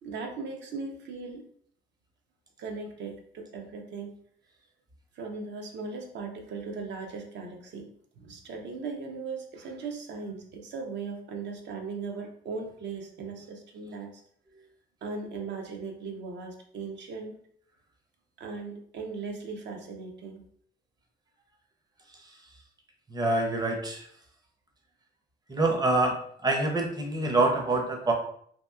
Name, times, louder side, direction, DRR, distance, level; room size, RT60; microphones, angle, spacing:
voice 1, 0.0-1.4 2.6-4.1 5.1-7.9 8.2-14.2 15.0-17.4 18.4-20.5, right 4 dB, 65° right, 2 dB, 0.7 m, -38 dB
voice 2, 23.1-24.0 25.5-26.2 26.4-28.1, right 2 dB, 20° right, 2 dB, 0.6 m, -25 dB
2.8 x 2.6 x 2.3 m, 0.63 s
cardioid pair, 90°, 20 cm